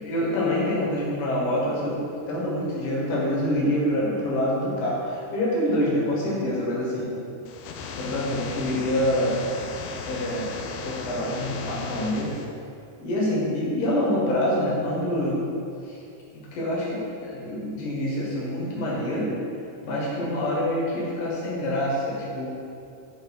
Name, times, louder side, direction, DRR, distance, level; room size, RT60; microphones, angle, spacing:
voice 1, 0.0-7.1 8.0-9.4 10.1-10.6 10.8-12.3 13.0-15.4 15.8-16.0 16.3-19.3 19.8-22.5, left 1 dB, 65° left, -5 dB, 2.7 m, -26 dB
sound 1, 7.5-12.5, left 4 dB, 80° left, 2.1 m, -36 dB
8.4 x 3.7 x 5.4 m, 2.6 s
omnidirectional pair, 4.4 m